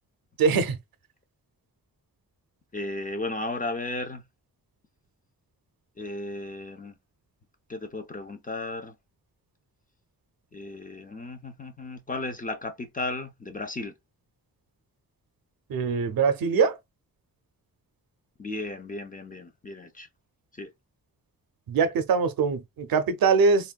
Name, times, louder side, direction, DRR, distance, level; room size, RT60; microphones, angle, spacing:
voice 1, 0.4-0.8 15.7-16.8 21.7-23.7, right 5 dB, 75° right, 0.6 m, -23 dB
voice 2, 2.7-4.2 6.0-6.9 7.7-8.9 10.5-13.9 18.4-20.1 20.6-20.7, left 2 dB, 25° left, 0.4 m, -34 dB
3.5 x 2.2 x 2.2 m
wide cardioid pair, 180°, 36 cm